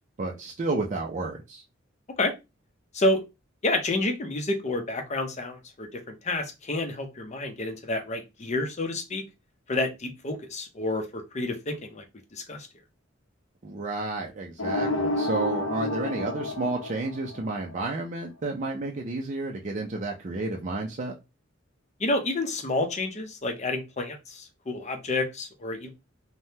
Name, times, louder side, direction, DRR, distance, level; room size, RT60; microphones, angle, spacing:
voice 1, 0.2-1.6 13.6-21.2, right 3 dB, 40° right, 0 dB, 0.5 m, -31 dB
voice 2, 3.6-9.2 9.7-12.0 12.3-12.7 22.0-25.9, left 2 dB, 35° left, 5 dB, 0.6 m, -29 dB
sound 1, 14.6-17.6, left 2 dB, 90° left, 0.8 m, -29 dB
3.4 x 2.1 x 2.7 m, 0.24 s
head